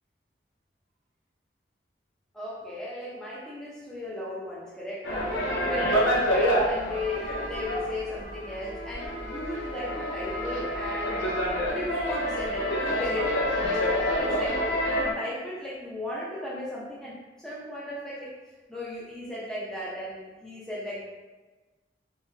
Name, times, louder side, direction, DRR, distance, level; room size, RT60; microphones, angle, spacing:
voice 1, 2.3-11.3 11.7-13.5 14.2-18.3 18.7-21.1, left 1 dB, 5° left, -7 dB, 0.7 m, -36 dB
sound 1, 5.0-15.1, equal, 80° left, 0.6 m, -28 dB
3.7 x 2.4 x 2.7 m, 1.2 s
head